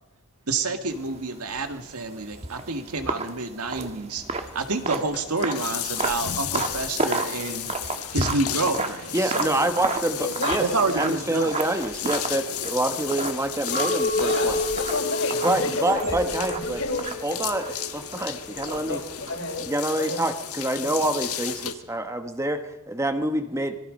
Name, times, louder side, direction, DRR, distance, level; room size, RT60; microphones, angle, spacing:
voice 1, 0.5-9.7 10.6-11.5, right 3 dB, 90° right, 7 dB, 2.1 m, -29 dB
sound 1, 0.9-19.7, right 3 dB, 30° right, 1.4 m, -33 dB
sound 2, 4.5-21.7, left 10 dB, 85° left, 1.5 m, -34 dB
voice 2, 9.1-10.7 10.9-14.6 15.4-16.8 17.2-19.0 19.6-23.8, right 1 dB, 15° right, 7 dB, 1.1 m, -27 dB
voice 3, 10.2-10.9 14.1-16.2 16.5-17.0 18.6-19.6 19.9-20.3 20.6-20.9, left 2 dB, 70° left, 2 dB, 5.0 m, -31 dB
Chink clink, 13.7-19.2, left 2 dB, 50° left, 1.2 m, -29 dB
26.0 x 21.5 x 5.3 m, 0.93 s
head